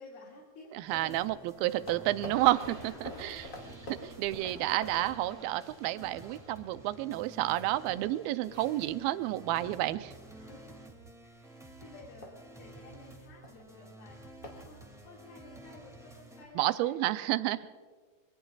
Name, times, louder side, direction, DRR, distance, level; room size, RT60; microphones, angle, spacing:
voice 1, 0.0-1.3 2.9-3.6 3.9-4.2 4.5-5.1 10.2-10.8 11.2-14.2 14.6-17.0, left 3 dB, 75° left, -3 dB, 4.1 m, -53 dB
voice 2, 0.7-3.4 3.9-10.1 16.6-17.7, right 15 dB, 80° right, 12 dB, 2.3 m, -30 dB
sound 1, 0.8-6.0 6.4-6.6 7.0-9.7 10.0-10.3 10.9-11.2 11.5-11.6 11.9-15.3, left 1 dB, 35° left, 1.4 m, -49 dB
sound 2, 0.9-16.5, right 2 dB, ahead, 1.0 m, -52 dB
sound 3, 2.1-8.8, right 2 dB, 35° right, 0.6 m, -55 dB
25.0 x 21.5 x 2.4 m, 1.5 s
omnidirectional pair, 4.4 m